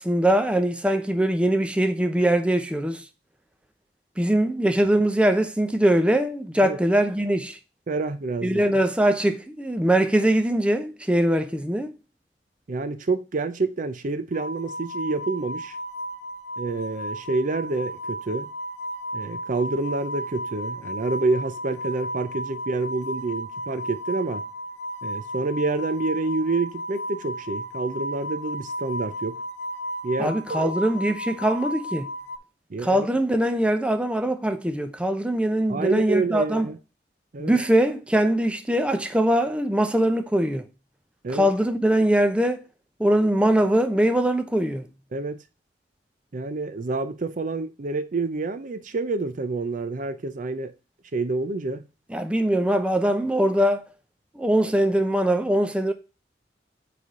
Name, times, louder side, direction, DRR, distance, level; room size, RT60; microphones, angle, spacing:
voice 1, 0.0-3.0 4.2-7.6 8.4-11.9 30.2-32.1 32.8-36.7 37.4-40.7 41.3-42.6 43.0-44.9 52.1-53.8 54.4-55.9, right 1 dB, 5° right, 0.6 m, -22 dB
voice 2, 7.9-8.6 12.7-15.8 16.6-18.5 19.1-24.4 25.0-29.4 30.0-30.7 32.7-33.1 35.7-36.8 37.3-37.6 41.2-41.5 45.1-45.4 46.3-50.7 51.1-51.9, right 3 dB, 50° right, 0.6 m, -28 dB
sound 1, 14.3-32.4, equal, 80° left, 0.7 m, -34 dB
8.1 x 3.4 x 3.7 m
head